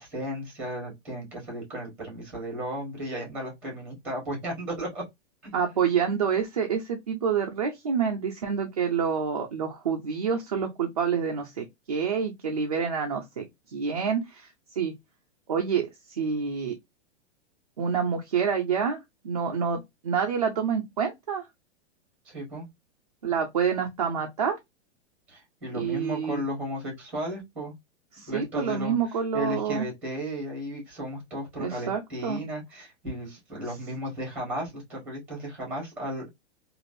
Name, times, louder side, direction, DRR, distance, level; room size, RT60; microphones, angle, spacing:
voice 1, 0.0-5.0 5.4-5.5 22.2-22.6 25.3-27.7 28.3-29.0 29.3-36.3, equal, 5° right, 1.3 m, -34 dB
voice 2, 5.5-14.9 15.5-16.7 17.8-21.5 23.2-24.6 25.7-26.4 28.1-29.9 31.6-32.4, right 6 dB, 35° right, 0.4 m, -28 dB
3.2 x 2.5 x 2.5 m
hypercardioid pair, 180°, 34 cm